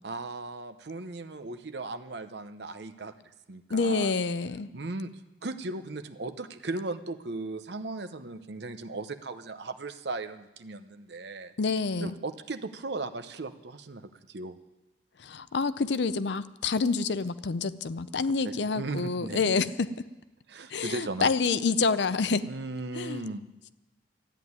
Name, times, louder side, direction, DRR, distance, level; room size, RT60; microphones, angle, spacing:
voice 1, 0.0-3.1 3.5-4.1 4.7-5.1 5.4-11.5 12.0-14.6 18.4-19.5 20.5-21.3 22.5-23.4, right 2 dB, 60° right, 10 dB, 0.8 m, -37 dB
voice 2, 3.7-4.7 11.6-12.1 15.2-20.0 20.7-22.5 22.9-23.3, left 4 dB, 65° left, 14 dB, 0.5 m, -28 dB
13.5 x 9.0 x 9.5 m, 1.1 s
head